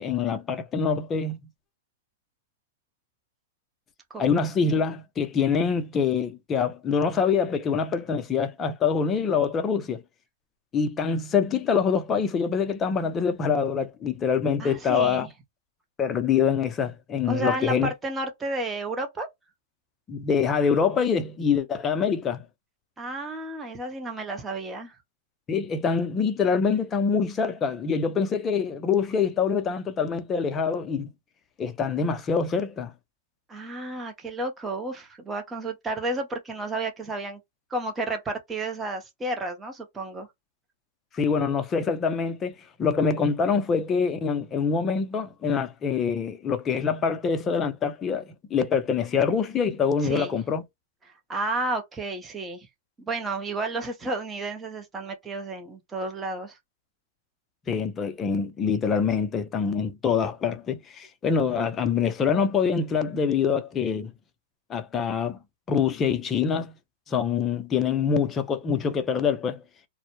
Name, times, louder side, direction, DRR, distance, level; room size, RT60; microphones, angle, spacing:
voice 1, 0.0-1.4 4.2-10.0 10.7-15.3 16.0-17.9 20.1-22.4 25.5-31.1 31.6-32.9 41.1-50.6 57.7-64.1 64.7-65.4 65.7-66.7 67.1-69.6, left 6 dB, 20° left, 0.5 m, -25 dB
voice 2, 14.6-15.3 17.3-19.3 23.0-24.9 33.5-37.4 37.7-40.3 50.0-50.3 51.3-52.7 53.0-56.6, right 2 dB, 15° right, 0.7 m, -31 dB
2.0 x 2.0 x 2.9 m
hypercardioid pair, 125°, 0 cm